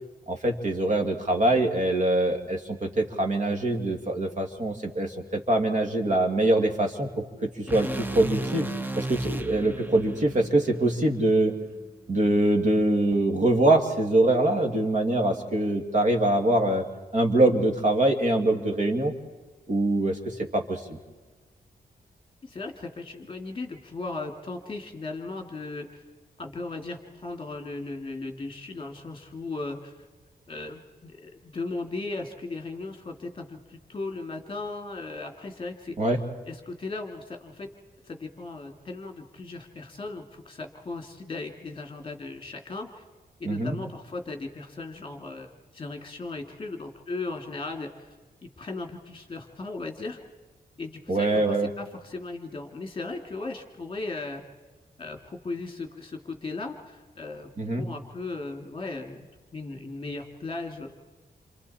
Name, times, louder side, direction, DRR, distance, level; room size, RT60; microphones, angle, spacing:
voice 1, 0.3-8.7 9.0-11.5 12.1-16.8 17.1-19.1 19.7-20.2 20.5-21.0 36.0-36.2 43.4-43.7 51.1-51.7 57.6-57.8, right 1 dB, 50° right, 4 dB, 2.4 m, -24 dB
sound 1, 7.7-11.9, right 2 dB, 10° right, 0.9 m, -35 dB
voice 2, 22.4-26.0 26.4-29.9 30.5-36.0 36.5-37.7 38.0-43.0 43.4-48.1 48.4-50.2 50.8-54.4 55.0-57.5 57.8-59.3 59.5-61.0, left 3 dB, 30° left, 4 dB, 2.5 m, -37 dB
28.0 x 27.5 x 4.3 m, 1.3 s
wide cardioid pair, 140°, 16 cm